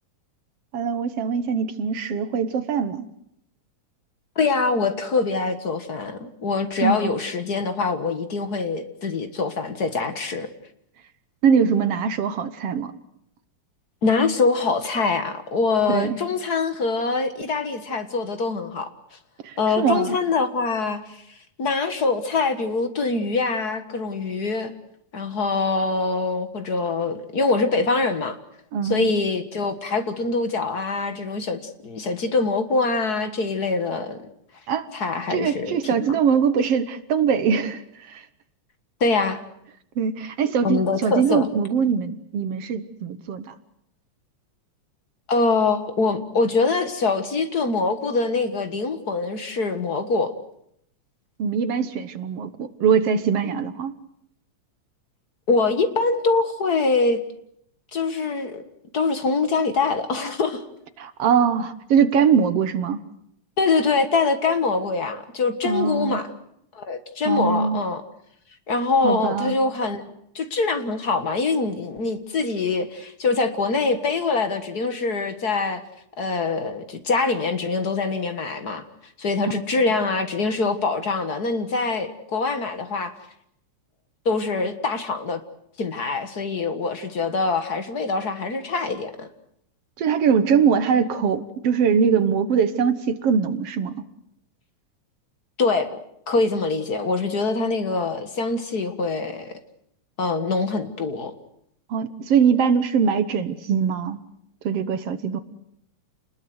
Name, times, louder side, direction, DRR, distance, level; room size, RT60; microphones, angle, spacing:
voice 1, 0.7-3.1 6.8-7.1 11.4-12.9 15.9-16.2 19.4-20.2 28.7-29.1 34.7-34.9 35.3-38.2 40.0-43.5 51.4-54.0 61.0-63.0 65.6-66.2 67.3-67.8 69.0-69.5 90.0-93.9 101.9-104.2 104.6-105.4, right 6 dB, 60° right, 11 dB, 2.0 m, -22 dB
voice 2, 4.3-10.5 14.0-18.9 19.6-21.2 21.6-24.7 25.1-28.4 28.8-34.2 34.9-36.0 39.0-39.4 40.6-41.5 45.3-50.3 55.5-57.2 57.9-58.6 58.9-60.6 63.6-66.3 66.7-68.0 68.7-70.0 70.3-75.8 76.2-78.8 79.2-83.1 84.2-85.4 85.8-89.3 95.6-96.0 96.3-99.5 100.2-101.3, left 4 dB, 40° left, 9 dB, 1.7 m, -24 dB
29.0 x 20.5 x 7.9 m, 0.74 s
omnidirectional pair, 3.3 m